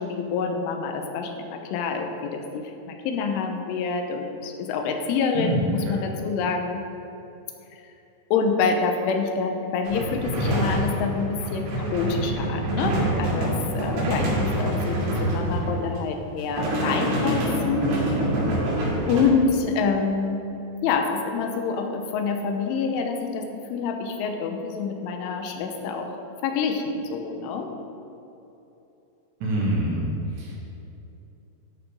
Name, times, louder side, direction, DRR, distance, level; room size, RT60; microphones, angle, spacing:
voice 1, 0.0-6.8 8.3-18.0 19.0-20.5 20.8-26.1 26.4-27.7, left 5 dB, 90° left, 4 dB, 3.3 m, -27 dB
sound 1, 9.8-16.0 16.4-19.2, right 1 dB, 85° right, 5.3 m, -26 dB
voice 2, 29.4-30.6, right 1 dB, 65° right, -4 dB, 4.0 m, -26 dB
13.0 x 7.0 x 5.3 m, 3.0 s
omnidirectional pair, 5.6 m